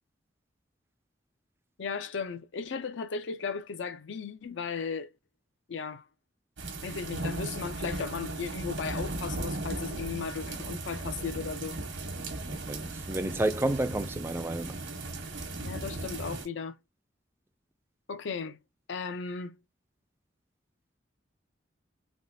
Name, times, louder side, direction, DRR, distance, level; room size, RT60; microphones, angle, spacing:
voice 1, 1.8-5.1 5.7-6.0 6.8-11.8 15.6-16.8 18.1-18.6 18.9-19.6, left 5 dB, 80° left, 0.5 m, -36 dB
sound 1, 6.6-16.5, right 2 dB, 70° right, 1.0 m, -37 dB
voice 2, 12.5-14.8, right 1 dB, 15° right, 0.3 m, -31 dB
3.5 x 2.3 x 2.6 m
head